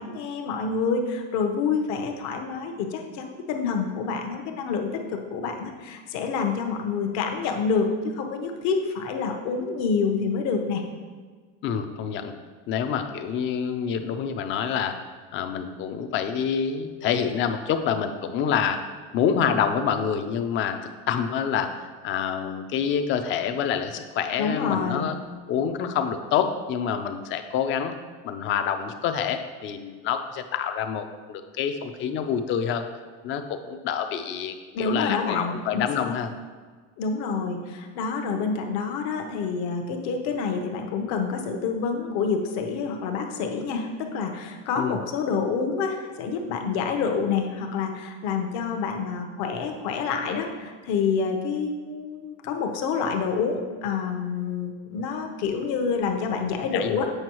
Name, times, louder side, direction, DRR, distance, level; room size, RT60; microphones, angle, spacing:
voice 1, 0.0-10.8 24.4-25.1 34.7-36.2 37.0-57.1, left 5 dB, 60° left, 3 dB, 0.9 m, -27 dB
voice 2, 11.6-12.3 12.7-15.0 15.3-18.8 19.1-20.8 21.1-25.2 25.5-27.9 28.2-32.9 33.2-36.3 44.8-45.0 56.7-57.1, left 7 dB, 40° left, 8 dB, 0.5 m, -27 dB
7.8 x 5.3 x 3.0 m, 1.5 s
cardioid pair, 160°, 32 cm